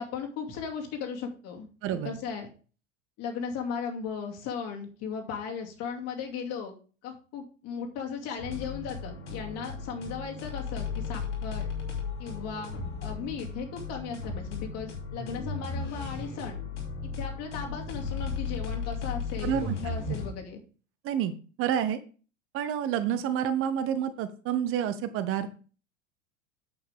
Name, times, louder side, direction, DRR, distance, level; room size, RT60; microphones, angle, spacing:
voice 1, 0.0-2.5 3.2-6.7 7.0-11.7 12.2-12.7 13.0-16.6 17.0-20.6, left 6 dB, 40° left, 2 dB, 2.6 m, -37 dB
sound 1, 8.4-20.3, left 4 dB, 65° left, 3.1 m, -35 dB
voice 2, 19.4-19.7 20.1-20.2 21.0-21.3 21.6-22.0 22.5-25.5, right 9 dB, 35° right, 11 dB, 0.9 m, -28 dB
8.9 x 8.0 x 3.6 m, 0.37 s
figure-of-eight pair, 80°, 37 cm